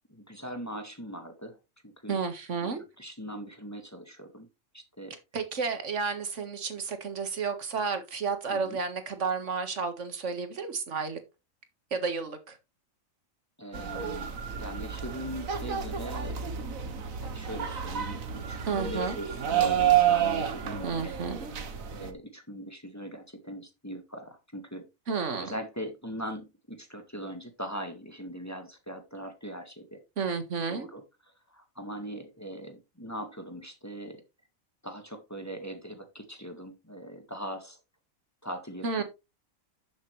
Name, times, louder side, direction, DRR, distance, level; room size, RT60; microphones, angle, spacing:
voice 1, 0.1-1.6 1.8-2.2 2.6-4.5 4.7-5.1 8.5-8.8 13.6-16.4 17.2-21.1 21.9-24.9 25.4-30.0 30.7-31.0 31.5-34.2 34.8-37.8 38.4-39.0, equal, 10° left, 1.6 m, -41 dB
voice 2, 2.1-2.8 5.3-11.2 11.9-12.6 18.7-19.2 20.8-21.5 25.1-25.6 30.2-30.9 38.8-39.0, right 5 dB, 65° right, 1.9 m, -31 dB
sound 1, 13.7-22.1, right 9 dB, 80° right, 1.6 m, -29 dB
11.0 x 7.5 x 3.2 m
omnidirectional pair, 1.4 m